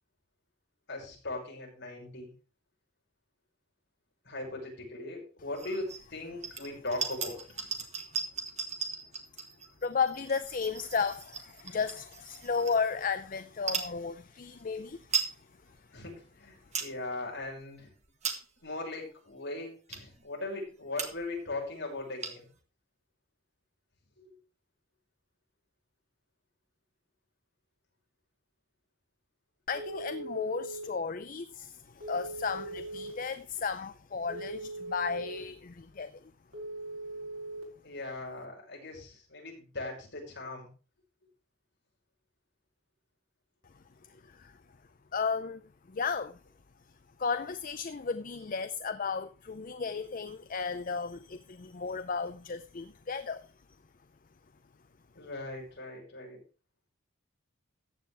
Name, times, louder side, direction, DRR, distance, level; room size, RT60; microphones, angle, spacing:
voice 1, 0.9-2.3 4.2-7.4 15.9-17.9 18.6-22.5 24.2-24.3 37.8-40.7 55.2-56.4, left 2 dB, 55° left, 5.7 m, -39 dB
sound 1, 5.5-6.0 6.4-13.1 13.6-13.9 14.6-14.7 14.9-15.3 15.8-15.9 16.4-16.9 17.4-17.6 18.0-18.7 19.3-19.4 19.9-20.2 20.7-20.8 20.9-21.4 21.6-21.7 21.9-22.6, right 6 dB, 35° right, 1.8 m, -37 dB
voice 2, 9.8-15.8 29.7-36.3 44.0-44.6 45.1-45.6 45.9-46.4 47.2-53.5, left 5 dB, 40° left, 0.5 m, -34 dB
Telephone, 29.7-30.8 32.0-33.1 34.3-35.4 36.5-37.6, right 2 dB, 80° right, 4.7 m, -40 dB
14.5 x 9.1 x 3.4 m
head